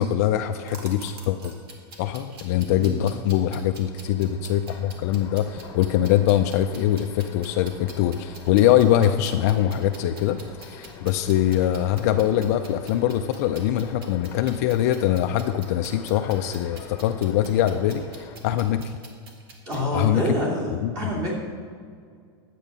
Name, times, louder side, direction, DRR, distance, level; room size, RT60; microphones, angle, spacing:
voice 1, 0.0-1.5 2.0-18.9 19.9-20.2 20.8-21.0, left 11 dB, 35° left, 7 dB, 0.3 m, -23 dB
sound 1, 0.7-19.9, right 3 dB, 60° right, 2.0 m, -47 dB
voice 2, 2.6-3.0 19.7-21.3, equal, 25° right, -3 dB, 2.6 m, -27 dB
Train, 3.0-18.4, left 5 dB, 20° left, 1.0 m, -44 dB
11.0 x 8.3 x 5.4 m, 2.1 s
supercardioid pair, 175°, 14 cm